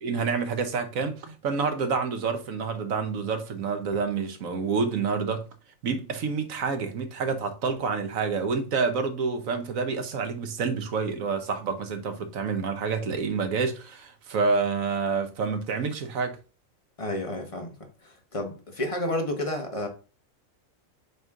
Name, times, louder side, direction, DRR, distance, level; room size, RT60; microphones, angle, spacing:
voice 1, 0.0-5.5 5.8-16.4, right 5 dB, 85° right, 1.4 m, -28 dB
voice 2, 17.0-17.7 18.0-19.9, left 1 dB, 25° left, 1.3 m, -31 dB
8.1 x 3.2 x 3.8 m
omnidirectional pair, 1.4 m